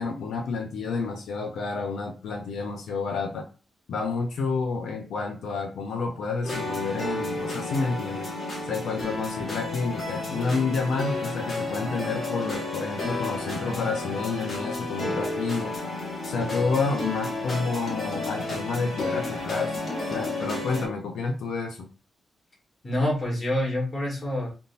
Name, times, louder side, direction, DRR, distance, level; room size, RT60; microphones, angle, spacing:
voice 1, 0.0-3.4 3.9-8.3 8.6-15.7 16.2-19.8 20.1-21.9, left 4 dB, 85° left, 2 dB, 0.6 m, -29 dB
sound 1, 6.4-20.9, left 2 dB, 45° left, 1.5 m, -31 dB
voice 2, 22.8-24.5, left 1 dB, 30° left, -2 dB, 1.4 m, -27 dB
3.6 x 2.7 x 2.5 m, 0.34 s
wide cardioid pair, 135°, 0 cm